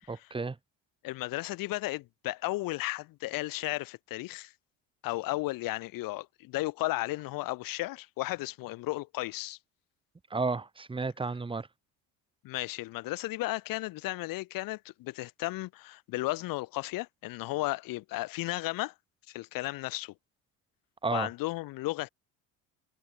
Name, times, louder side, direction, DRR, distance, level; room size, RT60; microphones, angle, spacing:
voice 1, 0.1-0.6 10.3-11.7 21.0-21.3, right 4 dB, 15° right, 1.9 m, -32 dB
voice 2, 1.0-4.5 5.0-9.6 12.4-18.9 19.3-20.1 21.1-22.1, left 19 dB, 80° left, 6.5 m, -34 dB
cardioid pair, 125°, 33 cm